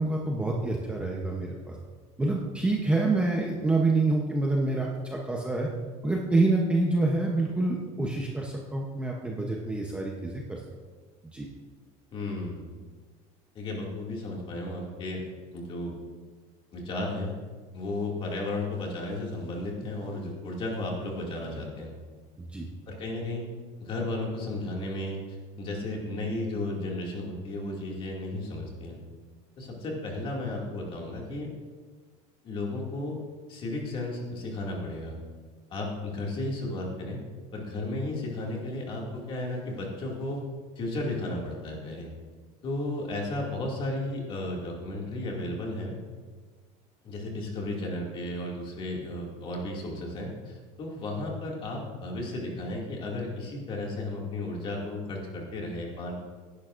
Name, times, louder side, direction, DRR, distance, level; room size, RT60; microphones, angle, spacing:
voice 1, 0.0-1.8 2.2-5.7 6.0-10.6 11.3-11.5 22.4-22.7, right 2 dB, 5° right, -1 dB, 0.7 m, -27 dB
voice 2, 12.1-12.8 13.5-15.2 15.5-15.9 16.7-17.3 17.7-21.9 22.9-23.4 23.8-25.2 25.6-29.0 29.6-31.5 32.4-33.2 33.5-35.1 35.7-37.2 37.5-40.4 40.8-42.1 42.6-45.9 47.0-56.1, left 2 dB, 35° left, -1 dB, 2.2 m, -34 dB
17.0 x 10.5 x 2.5 m, 1.5 s
cardioid pair, 170°, 15 cm